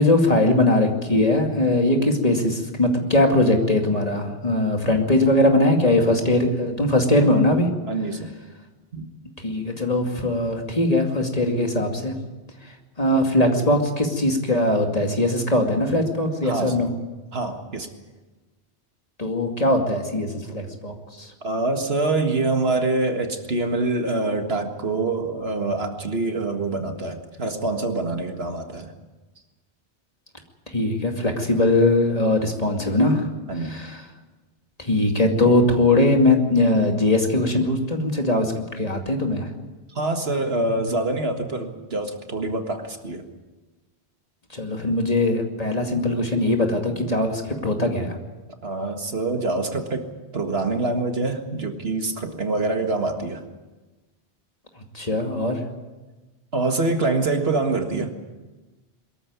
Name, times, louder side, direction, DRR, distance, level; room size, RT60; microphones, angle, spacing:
voice 1, 0.0-7.7 9.4-12.1 13.0-16.9 19.2-21.3 30.7-33.3 33.6-34.0 34.8-39.5 44.5-48.2 54.9-55.6, left 1 dB, 35° left, 3 dB, 2.5 m, -21 dB
voice 2, 7.8-8.3 8.9-9.1 16.4-16.9 17.3-17.9 21.4-28.9 33.5-33.8 40.0-43.3 48.6-50.1 50.3-53.4 56.5-58.1, right 2 dB, 65° right, 5 dB, 2.0 m, -25 dB
22.5 x 14.0 x 9.6 m, 1.2 s
omnidirectional pair, 1.1 m